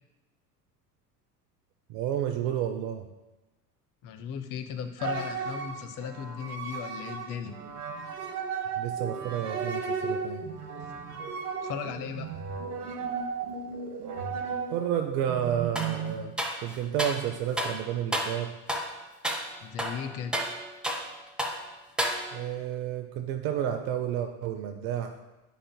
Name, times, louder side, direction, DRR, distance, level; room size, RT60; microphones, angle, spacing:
voice 1, 1.9-3.1 8.8-10.4 14.7-16.3 16.6-18.5 22.3-25.2, right 10 dB, 50° right, 6 dB, 0.5 m, -31 dB
voice 2, 4.0-7.6 11.6-12.3 19.6-20.4, left 7 dB, 40° left, 7 dB, 0.7 m, -36 dB
sound 1, 5.0-16.2, right 5 dB, 70° right, 0.9 m, -35 dB
sound 2, 15.8-16.0 16.4-17.2 17.6-17.8 18.1-18.4 18.7-18.9 19.2-19.5 19.8-21.1 21.4-21.6 22.0-22.5, equal, ahead, 0.5 m, -31 dB
9.9 x 5.0 x 2.2 m, 1.0 s
hypercardioid pair, 75°, 48 cm